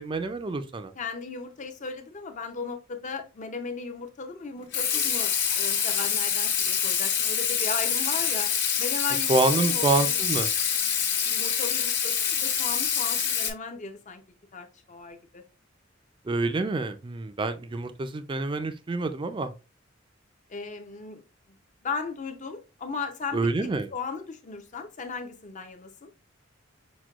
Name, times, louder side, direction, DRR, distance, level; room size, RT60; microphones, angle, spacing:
voice 1, 0.0-0.9 9.3-10.5 16.2-19.5 23.3-23.9, right 3 dB, 25° right, 0.4 m, -27 dB
voice 2, 1.0-8.5 8.8-10.2 11.2-14.2 14.5-15.4 20.5-21.2 21.8-26.1, left 4 dB, 40° left, 0.6 m, -36 dB
Water tap faucet / Sink (filling or washing), 4.7-13.5, left 7 dB, 65° left, 1.2 m, -26 dB
6.0 x 2.2 x 2.4 m
head